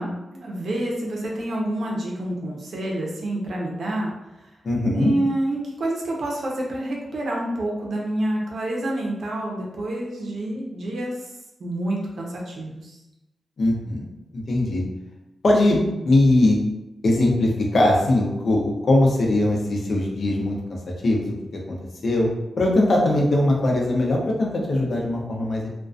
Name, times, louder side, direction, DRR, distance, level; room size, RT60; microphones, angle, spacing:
voice 1, 0.0-4.1 4.9-11.1 11.6-12.9, right 1 dB, 70° right, -2 dB, 0.6 m, -28 dB
voice 2, 4.6-5.1 13.6-14.0 14.3-14.8 15.4-16.6 17.0-20.6 21.0-21.3 21.7-21.8 22.0-22.3 22.6-25.7, left 1 dB, 60° left, -1 dB, 0.6 m, -20 dB
2.4 x 2.2 x 2.4 m, 0.94 s
wide cardioid pair, 105°, 0 cm